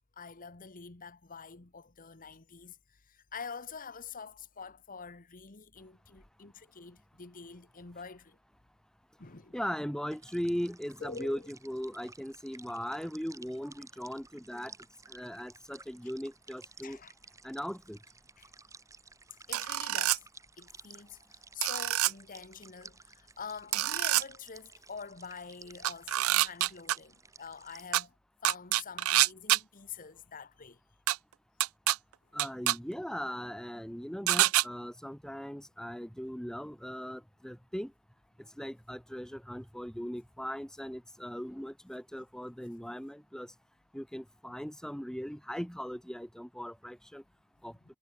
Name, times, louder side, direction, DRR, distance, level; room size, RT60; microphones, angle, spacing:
voice 1, 0.2-8.4 9.2-9.5 11.0-11.5 16.8-17.1 18.4-18.5 19.5-20.3 20.6-28.2 28.4-30.8 47.6-47.7, left 5 dB, 40° left, 1.2 m, -46 dB
voice 2, 9.5-14.7 15.1-17.0 17.4-18.0 32.3-37.9 38.6-43.5 43.9-47.2 47.6-47.7, equal, 5° left, 1.3 m, -39 dB
sound 1, 10.1-27.9, right 4 dB, 15° right, 1.5 m, -55 dB
sound 2, 19.5-20.2 21.6-22.1 23.7-24.2 25.8-27.0 27.9-28.0 28.4-29.6 31.1-31.2 31.6-32.0 32.4-32.8 34.3-34.6, right 15 dB, 70° right, 0.4 m, -26 dB
head